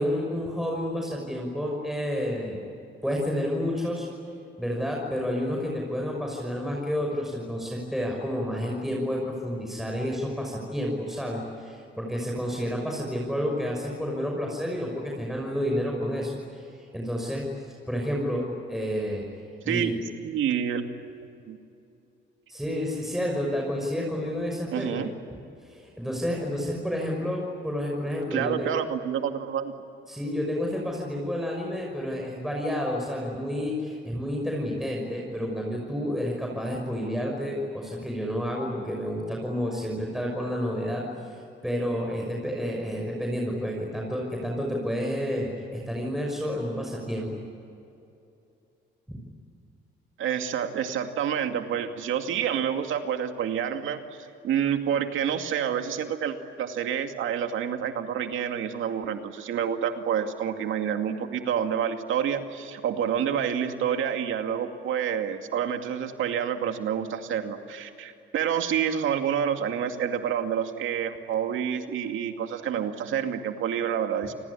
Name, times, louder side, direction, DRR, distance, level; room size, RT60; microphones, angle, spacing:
voice 1, 0.0-2.6 3.0-4.1 4.6-17.5 17.9-19.2 19.6-20.0 22.5-25.0 25.6-28.7 30.1-47.4 49.1-49.2, equal, ahead, -1 dB, 6.1 m, -30 dB
voice 2, 20.2-20.9 21.5-21.6 24.7-25.1 28.3-29.7 50.2-54.0 54.4-74.3, right 8 dB, 80° right, 6 dB, 2.4 m, -28 dB
28.0 x 20.5 x 9.9 m, 2.7 s
cardioid pair, 90°, 20 cm